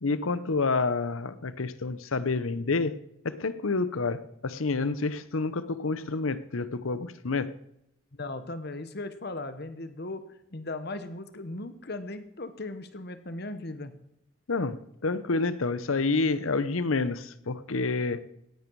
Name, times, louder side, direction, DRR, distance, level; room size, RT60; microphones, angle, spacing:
voice 1, 0.0-2.9 3.2-7.5 14.5-14.8 15.0-18.2, left 3 dB, 90° left, 14 dB, 0.9 m, -28 dB
voice 2, 8.1-10.2 10.5-13.9, left 2 dB, 55° left, 10 dB, 1.2 m, -37 dB
17.5 x 10.5 x 4.7 m, 0.80 s
head